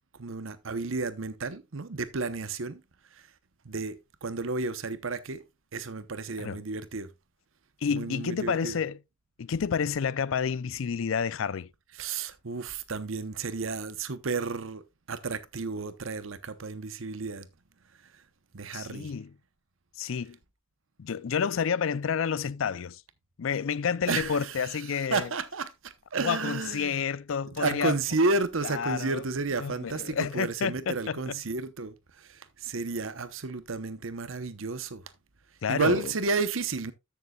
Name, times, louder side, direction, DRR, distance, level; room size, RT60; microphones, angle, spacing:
voice 1, 0.2-2.8 3.1-3.2 3.6-5.4 5.7-7.1 7.9-8.8 12.0-14.8 15.1-17.5 18.5-19.1 24.1-26.9 27.6-35.0 35.7-36.9, right 3 dB, 75° right, 0.9 m, -32 dB
voice 2, 7.8-9.0 9.4-11.7 18.7-19.3 20.0-20.4 21.0-23.0 23.4-25.3 26.2-28.0 28.6-29.2 29.6-31.4 35.6-36.1, left 6 dB, 70° left, 0.4 m, -30 dB
13.5 x 6.9 x 2.3 m
head